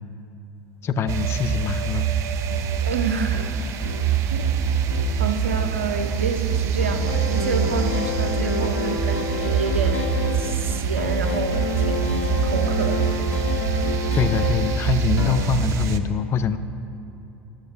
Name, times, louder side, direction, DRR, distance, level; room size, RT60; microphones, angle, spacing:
voice 1, 0.8-2.1 10.5-10.6 14.1-16.6, left 7 dB, 40° left, 12 dB, 0.5 m, -24 dB
sound 1, 1.1-16.0, right 7 dB, 50° right, 0.6 m, -24 dB
sound 2, 2.5-15.4, left 3 dB, 90° left, 1.0 m, -30 dB
voice 2, 2.9-3.6 4.3-4.8 5.2-13.2, right 5 dB, 90° right, 7 dB, 0.7 m, -29 dB
11.5 x 6.6 x 5.4 m, 2.9 s
hypercardioid pair, 80°, 7 cm